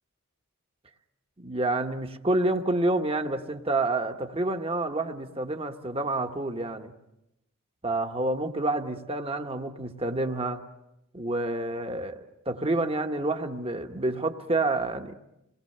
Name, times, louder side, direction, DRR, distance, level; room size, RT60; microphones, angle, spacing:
voice 1, 1.4-6.9 7.8-10.6 11.1-15.1, right 2 dB, 25° right, 6 dB, 1.2 m, -28 dB
28.0 x 20.5 x 6.7 m, 0.88 s
head